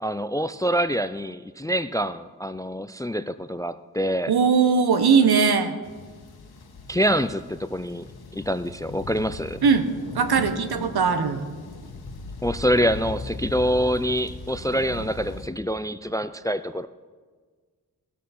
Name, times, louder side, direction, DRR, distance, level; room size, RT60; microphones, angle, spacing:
voice 1, 0.0-4.3 6.9-8.1 8.3-9.6 12.4-16.9, equal, 10° left, 14 dB, 0.3 m, -26 dB
voice 2, 4.3-5.7 9.6-9.9 10.1-11.4, right 5 dB, 75° right, 9 dB, 1.1 m, -19 dB
sound 1, 5.8-15.5, left 3 dB, 70° left, 1.3 m, -38 dB
18.5 x 6.4 x 4.2 m, 1.5 s
cardioid pair, 50°, 39 cm